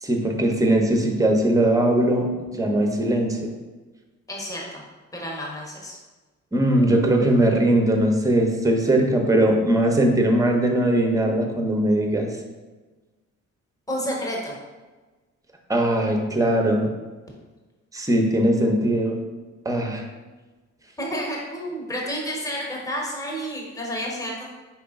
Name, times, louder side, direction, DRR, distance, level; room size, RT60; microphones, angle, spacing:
voice 1, 0.0-2.3 2.6-3.5 6.5-12.3 15.7-16.9 17.9-19.2 19.6-20.1, right 1 dB, 10° right, 2 dB, 0.7 m, -20 dB
voice 2, 4.3-4.8 5.1-6.0 13.9-14.6 21.0-24.5, equal, 10° left, -2 dB, 1.0 m, -30 dB
4.5 x 2.9 x 3.5 m, 1.3 s
cardioid pair, 90°, 30 cm